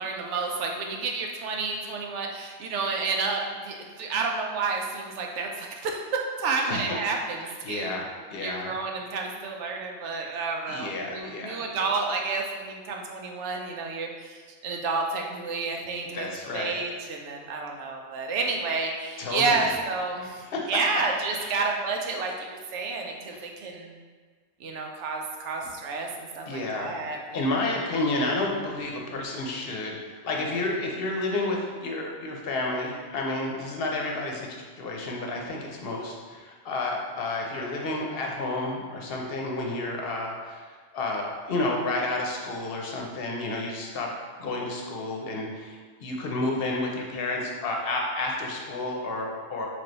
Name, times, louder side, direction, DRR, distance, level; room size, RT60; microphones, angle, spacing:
voice 1, 0.0-6.0 6.4-8.0 8.4-20.4 20.7-23.9 24.6-26.1 26.4-27.4 28.1-28.2, right 4 dB, 85° right, 1 dB, 0.9 m, -30 dB
voice 2, 7.4-8.0 8.3-8.7 10.7-11.7 16.1-16.8 19.2-19.7 20.4-20.7 21.3-21.6 23.3-23.5 26.5-27.0 27.3-40.7 40.9-44.1 44.4-49.7, left 2 dB, 60° left, 0 dB, 0.9 m, -31 dB
3.4 x 3.3 x 3.9 m, 1.5 s
omnidirectional pair, 1.2 m